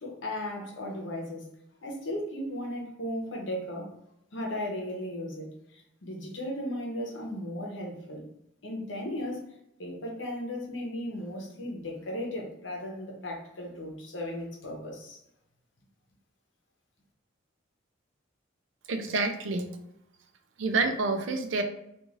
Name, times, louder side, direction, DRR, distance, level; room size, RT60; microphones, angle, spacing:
voice 1, 0.0-1.5 1.8-3.9 4.3-8.2 8.6-9.4 9.8-15.2, left 1 dB, 70° left, 0 dB, 0.8 m, -36 dB
voice 2, 18.9-19.7 20.6-21.6, right 3 dB, 70° right, 6 dB, 0.4 m, -28 dB
3.1 x 2.4 x 2.4 m, 0.79 s
head